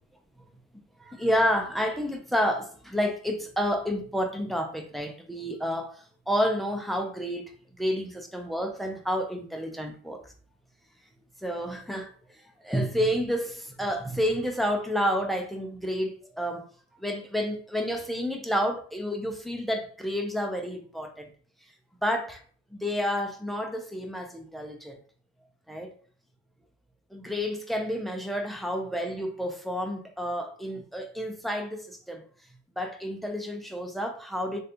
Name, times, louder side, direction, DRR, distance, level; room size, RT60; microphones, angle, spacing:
voice 1, 1.0-10.3 11.4-12.1 12.6-16.6 17.0-21.3 22.0-22.4 22.7-25.0 25.7-25.9 27.1-32.2 32.8-34.6, equal, ahead, 0.6 m, -30 dB
3.2 x 2.5 x 2.8 m
cardioid pair, 90°, 30 cm